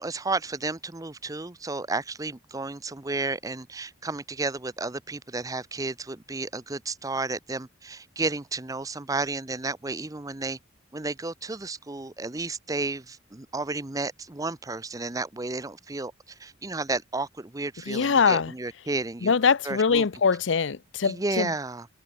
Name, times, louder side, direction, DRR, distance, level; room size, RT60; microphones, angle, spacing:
voice 1, 0.0-10.6 10.9-19.3 19.6-20.1 21.0-21.9, right 3 dB, 20° right, 0.7 m, -32 dB
voice 2, 17.9-18.5 19.2-21.5, left 5 dB, 70° left, 0.6 m, -23 dB
head